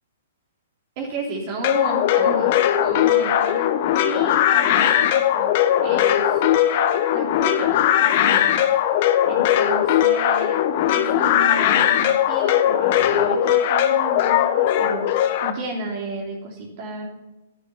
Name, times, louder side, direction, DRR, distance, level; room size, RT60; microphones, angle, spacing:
voice 1, 0.9-2.5 2.8-3.7 4.0-6.4 7.1-8.6 9.3-15.1 15.4-17.1, right 2 dB, 45° right, -3 dB, 3.3 m, -32 dB
sound 1, 1.6-15.5, left 11 dB, 50° left, 1.1 m, -19 dB
11.0 x 11.0 x 5.7 m, 1.0 s
hypercardioid pair, 120°, 0 cm